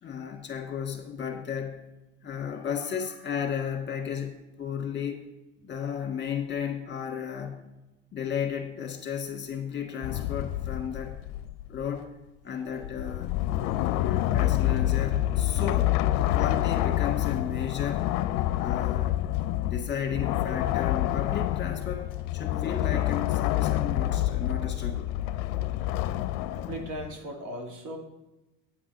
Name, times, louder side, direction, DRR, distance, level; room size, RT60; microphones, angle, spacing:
voice 1, 0.0-1.8 2.2-5.3 5.6-7.7 8.1-11.2 11.7-12.2 12.4-13.3 14.0-18.1 18.6-19.2 19.7-25.1, left 7 dB, 30° left, 3 dB, 1.7 m, -34 dB
sound 1, 10.0-12.0 12.8-27.1, left 14 dB, 65° left, 0.5 m, -27 dB
voice 2, 26.5-28.0, right 1 dB, 55° right, 3 dB, 2.0 m, -38 dB
9.0 x 6.0 x 5.3 m, 0.99 s
supercardioid pair, 95°, 36 cm